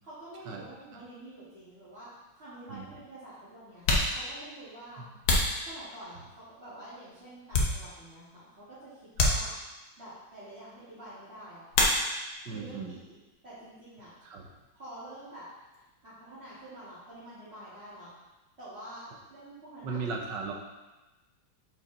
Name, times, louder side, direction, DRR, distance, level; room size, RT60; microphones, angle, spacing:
voice 1, 0.0-3.9 4.1-5.0 5.6-9.5 10.0-11.6 12.4-14.1 14.7-15.5 16.0-18.1 18.6-19.0 19.3-20.0, right 1 dB, 30° right, -15 dB, 2.5 m, -47 dB
sound 1, 2.0-2.1 3.0-3.1 3.7-6.3 6.9-8.2 8.5-8.7 9.1-10.0 11.7-12.5 12.8-13.5 13.7-15.9, left 2 dB, 75° left, 1.9 m, -30 dB
voice 2, 12.5-12.9 14.3-14.4 19.8-20.5, right 4 dB, 65° right, 0 dB, 1.5 m, -36 dB
6.0 x 5.1 x 4.2 m, 1.1 s
omnidirectional pair, 2.3 m